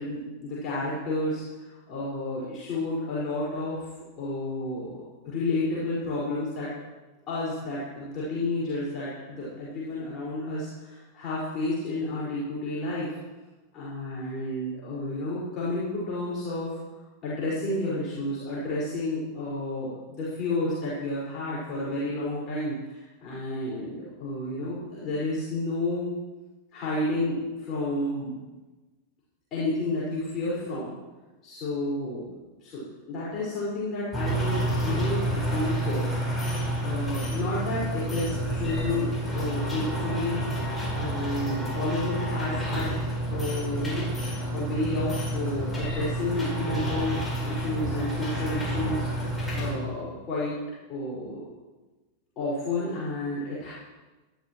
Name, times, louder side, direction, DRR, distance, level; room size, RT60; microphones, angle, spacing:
voice 1, 0.0-3.8 4.2-6.7 7.3-13.2 13.7-16.8 17.2-26.1 26.7-28.4 29.5-31.0 31.4-32.3 32.6-32.8 33.1-36.1 36.8-39.1 39.3-40.4 40.9-43.0 43.3-50.5 50.9-51.5 52.4-53.7, left 2 dB, 30° left, -9 dB, 5.2 m, -31 dB
sound 1, 34.1-49.7, right 1 dB, 10° left, 4.8 m, -29 dB
18.5 x 12.0 x 3.1 m, 1.2 s
figure-of-eight pair, 90°, 0 cm